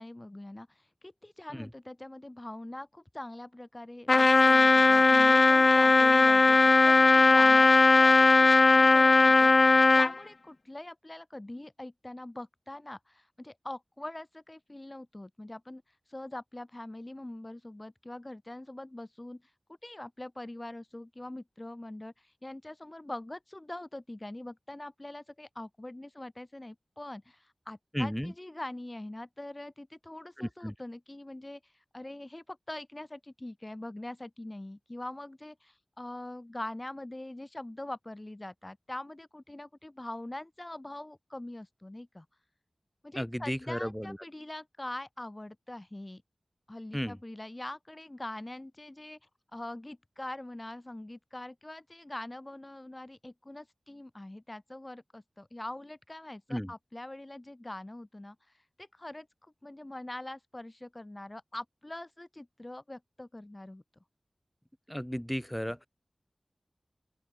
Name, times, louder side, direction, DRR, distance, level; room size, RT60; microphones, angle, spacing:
voice 1, 0.0-19.5 19.8-42.3 43.0-46.2 46.7-63.8, left 1 dB, 25° left, 2.0 m, -43 dB
Trumpet, 4.1-10.1, left 3 dB, 55° left, 0.4 m, -19 dB
voice 2, 27.9-28.3 30.4-30.7 43.1-44.2 46.9-47.2 56.5-56.7 64.9-65.9, equal, 5° left, 5.9 m, -34 dB
open air
wide cardioid pair, 75°, 0 cm